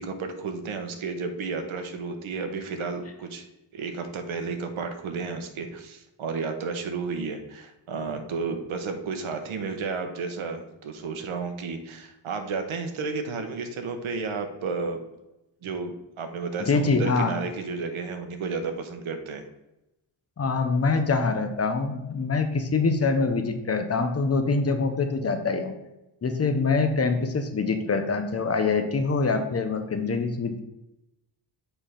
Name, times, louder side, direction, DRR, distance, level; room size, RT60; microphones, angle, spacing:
voice 1, 0.0-3.5 3.7-15.1 15.6-19.4, right 4 dB, 80° right, 6 dB, 1.1 m, -32 dB
voice 2, 16.6-17.4 20.4-25.7 26.2-30.6, left 4 dB, 30° left, 6 dB, 0.7 m, -24 dB
7.3 x 3.4 x 5.7 m, 0.92 s
wide cardioid pair, 180°, 47 cm